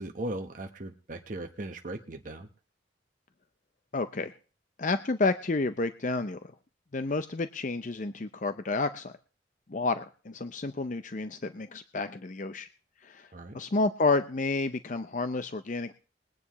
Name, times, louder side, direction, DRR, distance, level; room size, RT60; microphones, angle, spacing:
voice 1, 0.0-2.5 13.3-13.6, right 1 dB, 45° right, 5 dB, 1.1 m, -38 dB
voice 2, 3.9-4.3 4.8-6.5 6.9-9.1 9.7-12.7 13.0-13.3 13.5-15.9, left 3 dB, 40° left, 10 dB, 0.6 m, -30 dB
21.5 x 9.8 x 3.1 m, 0.38 s
head